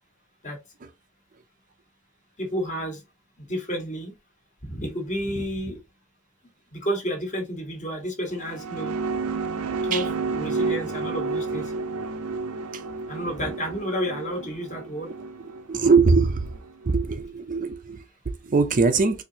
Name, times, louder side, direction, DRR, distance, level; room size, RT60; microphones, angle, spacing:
voice 1, 2.4-3.0 3.4-4.1 4.6-5.8 6.7-8.9 9.8-10.0 10.3-11.7 13.1-15.1, equal, 35° left, 1.4 m, -30 dB
sound 1, 8.3-17.0, right 4 dB, 90° right, 0.6 m, -31 dB
voice 2, 15.4-16.6 16.9-19.2, right 4 dB, 40° right, 0.5 m, -22 dB
4.3 x 2.8 x 2.7 m
head